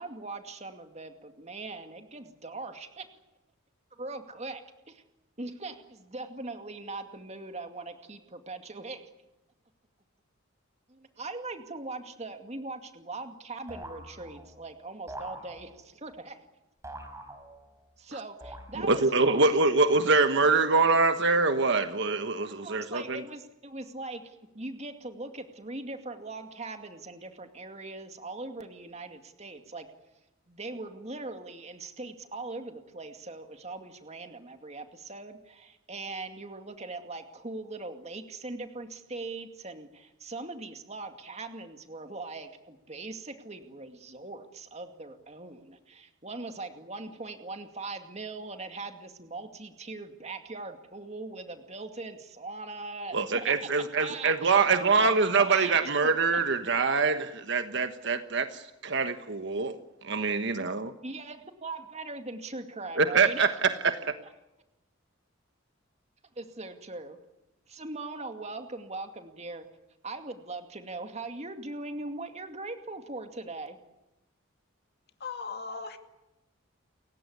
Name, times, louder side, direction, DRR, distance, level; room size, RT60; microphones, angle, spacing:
voice 1, 0.0-3.1 3.9-5.0 5.4-9.0 10.9-16.4 18.0-19.4 22.5-24.2 24.5-29.9 30.5-53.5 54.0-55.9 61.0-63.4 66.4-67.2 67.7-69.7 70.0-73.8, right 3 dB, 35° right, 2.3 m, -40 dB
sound 1, 13.7-14.6 15.1-16.0 16.8-17.9 18.4-19.1, right 1 dB, 15° right, 4.5 m, -45 dB
voice 2, 18.7-23.2 53.1-60.9 63.0-64.2, right 4 dB, 60° right, 1.3 m, -25 dB
voice 3, 75.2-76.0, left 4 dB, 50° left, 2.4 m, -37 dB
29.5 x 16.0 x 9.6 m
head